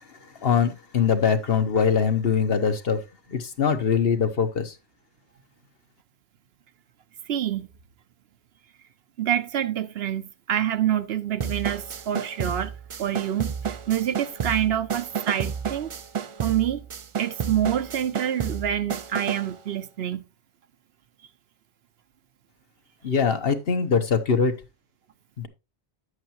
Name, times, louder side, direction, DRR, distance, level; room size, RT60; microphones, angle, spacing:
voice 1, 0.4-3.0 3.3-4.7 23.0-24.5 25.4-25.5, left 6 dB, 60° left, 1.3 m, -22 dB
voice 2, 7.3-7.7 9.2-10.2 10.5-12.7 13.0-15.9 16.4-16.9 17.2-20.2, right 10 dB, 70° right, 0.9 m, -26 dB
sound 1, 11.4-19.5, right 7 dB, 50° right, 0.4 m, -31 dB
10.5 x 8.0 x 2.9 m
omnidirectional pair, 1.1 m